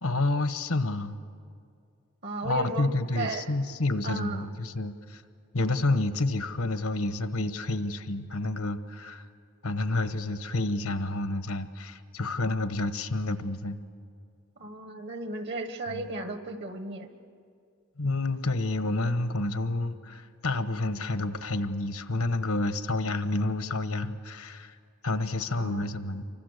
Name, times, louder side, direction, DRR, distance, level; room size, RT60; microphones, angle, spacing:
voice 1, 0.0-1.2 2.4-5.2 5.5-9.3 9.6-13.8 15.9-16.0 18.0-24.8 25.0-26.2, left 2 dB, 80° left, 11 dB, 1.1 m, -29 dB
voice 2, 2.2-2.9 3.1-3.5 4.0-4.5 14.6-17.1 25.5-26.1, right 2 dB, 55° right, 8 dB, 1.5 m, -35 dB
28.5 x 24.5 x 6.6 m, 2.3 s
head